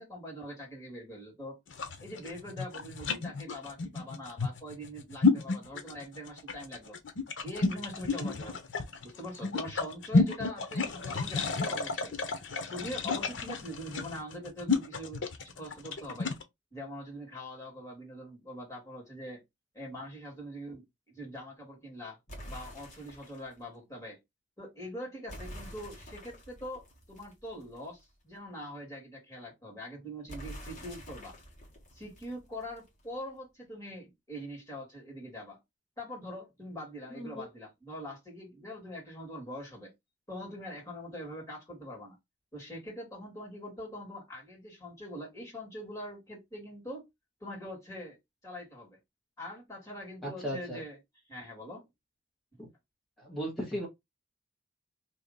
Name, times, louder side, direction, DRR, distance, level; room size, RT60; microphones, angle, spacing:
voice 1, 0.0-1.6 2.0-7.0 7.4-8.6 9.0-12.2 12.7-16.3 16.7-19.4 19.7-22.2 22.5-24.2 24.6-31.4 31.9-35.6 36.0-39.9 40.3-42.2 42.5-47.1 47.4-48.2 48.4-49.0 49.4-51.0 51.3-51.9, equal, 20° left, 2.2 m, -43 dB
sound 1, 1.7-16.4, left 4 dB, 85° left, 0.8 m, -31 dB
sound 2, 22.3-23.5 25.3-28.0 30.3-33.0, equal, 40° left, 1.6 m, -47 dB
voice 2, 37.1-37.5 50.2-50.8 52.6-52.7 53.2-53.9, equal, ahead, 1.4 m, -36 dB
2.9 x 2.9 x 3.9 m
head